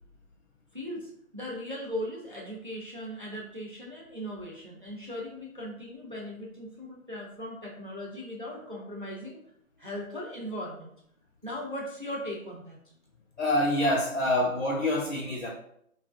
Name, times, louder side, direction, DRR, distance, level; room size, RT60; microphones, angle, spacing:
voice 1, 0.7-9.4 9.8-10.9 11.4-12.8, equal, 40° right, -3 dB, 0.5 m, -38 dB
voice 2, 13.4-15.5, left 1 dB, 60° left, -3 dB, 0.6 m, -26 dB
2.8 x 2.4 x 2.3 m, 0.71 s
figure-of-eight pair, 180°, 42 cm